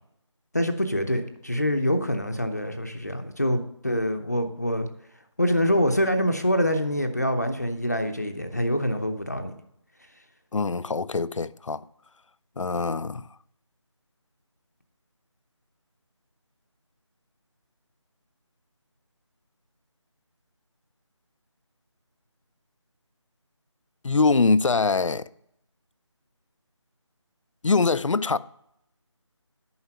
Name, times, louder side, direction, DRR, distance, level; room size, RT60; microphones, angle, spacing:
voice 1, 0.5-4.9 5.4-9.5, equal, 35° left, 0.7 m, -25 dB
voice 2, 10.5-11.8 12.6-13.3 24.0-25.2 27.6-28.4, left 4 dB, 80° left, 0.5 m, -23 dB
9.5 x 5.9 x 5.7 m
figure-of-eight pair, 180°, 16 cm